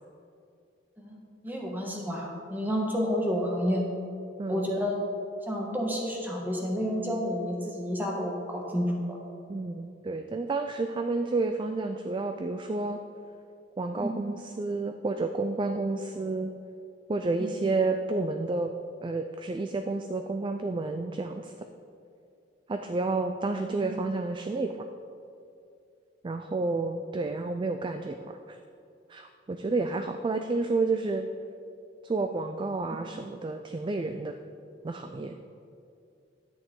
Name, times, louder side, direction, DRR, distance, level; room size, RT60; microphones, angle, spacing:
voice 1, 1.4-3.9 4.5-5.0 5.5-9.2 14.0-14.1 17.4-17.5 23.7-23.9, equal, 10° right, -1 dB, 1.4 m, -30 dB
voice 2, 9.5-13.0 13.8-16.5 17.1-18.7 19.0-21.7 22.7-24.8 26.2-28.6 29.1-31.2 32.0-34.3 34.8-35.3, right 3 dB, 25° right, 7 dB, 0.3 m, -30 dB
10.5 x 8.8 x 3.8 m, 2.5 s
head